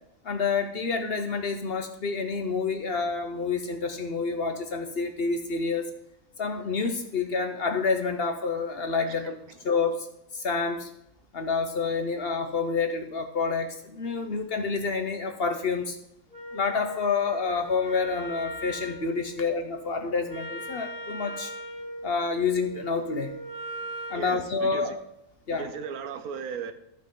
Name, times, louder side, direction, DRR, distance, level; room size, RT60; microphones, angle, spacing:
voice 1, 0.2-5.9 6.4-9.4 9.6-10.1 10.3-10.9 11.3-16.0 16.5-21.5 22.0-23.3 24.1-25.0 25.5-25.7, left 4 dB, 50° left, 0.9 m, -28 dB
Wind instrument woodwind instrument, 16.3-24.3, equal, 25° left, 2.0 m, -39 dB
voice 2, 24.1-24.8 25.6-26.7, right 6 dB, 80° right, 1.3 m, -36 dB
13.5 x 5.6 x 3.7 m
omnidirectional pair, 1.5 m